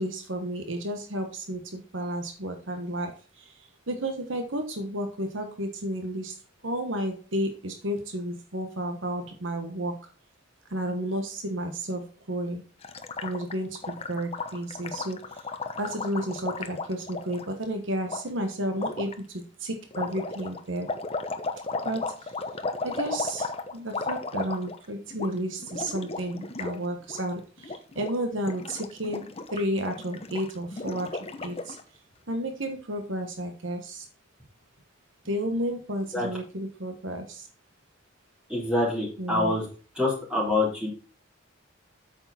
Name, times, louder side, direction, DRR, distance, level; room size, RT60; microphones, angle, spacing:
voice 1, 0.0-3.4 3.9-6.3 6.6-9.9 10.7-12.6 13.2-15.2 15.8-20.9 21.8-22.3 22.8-31.1 31.4-31.8 32.3-34.0 35.2-37.5 39.2-39.5, right 1 dB, 65° right, 6 dB, 1.3 m, -32 dB
Gurgling, 12.8-17.4 18.1-18.2 18.8-19.1 19.9-24.9 25.1-25.3 25.6-26.8 27.0-27.2 27.6-28.1 28.4-31.8, left 3 dB, 30° left, 0.9 m, -34 dB
voice 2, 38.5-39.6 40.0-40.9, left 2 dB, 5° right, -6 dB, 3.9 m, -26 dB
8.6 x 6.7 x 4.2 m, 0.39 s
head